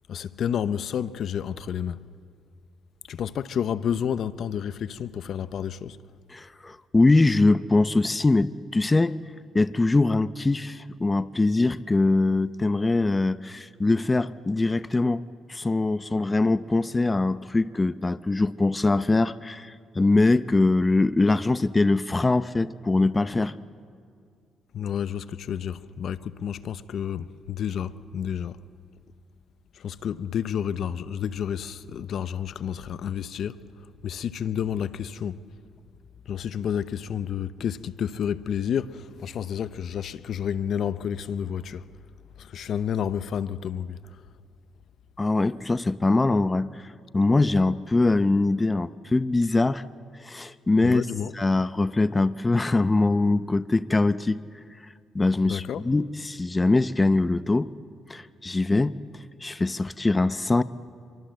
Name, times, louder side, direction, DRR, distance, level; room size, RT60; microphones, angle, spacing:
voice 1, 0.1-2.0 3.1-6.0 24.7-28.6 29.7-35.4 36.3-41.9 42.4-44.0 50.8-51.3 55.4-55.9, left 8 dB, 65° left, 0.8 m, -30 dB
voice 2, 6.3-9.2 9.5-15.2 15.5-23.6 45.2-46.7 47.1-49.8 50.2-51.0 51.4-54.4 55.1-57.7 58.1-59.0 59.4-60.6, left 2 dB, 20° left, 0.7 m, -22 dB
26.0 x 23.5 x 7.7 m
cardioid pair, 90°, 0 cm